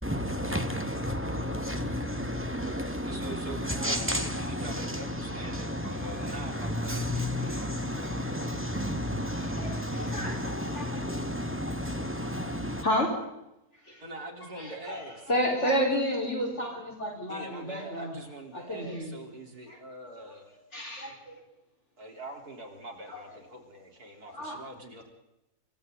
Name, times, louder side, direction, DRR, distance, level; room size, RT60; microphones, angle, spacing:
voice 1, 0.0-12.8, equal, 10° right, 1.9 m, -32 dB
voice 2, 3.0-8.5 14.0-15.1 15.9-16.0 17.3-20.5 22.0-25.0, right 1 dB, 70° right, 4.7 m, -44 dB
voice 3, 9.4-10.4 10.7-10.9 12.8-13.1 13.7-14.0 14.5-18.1 18.5-19.1 19.7-19.8 20.5-21.4 23.1-23.2 24.3-24.6, equal, 45° left, 5.0 m, -31 dB
29.0 x 24.5 x 4.0 m
omnidirectional pair, 1.6 m